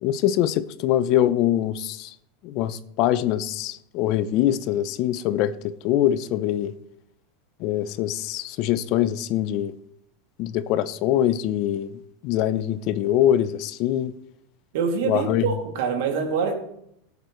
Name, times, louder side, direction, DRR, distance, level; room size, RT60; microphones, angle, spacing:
voice 1, 0.0-2.1 2.4-6.7 7.6-9.7 10.4-14.1 15.0-15.5, left 12 dB, 50° left, 0.6 m, -23 dB
voice 2, 14.7-16.5, right 6 dB, 70° right, 2.4 m, -25 dB
15.5 x 8.1 x 3.1 m
supercardioid pair, 135°, 0 cm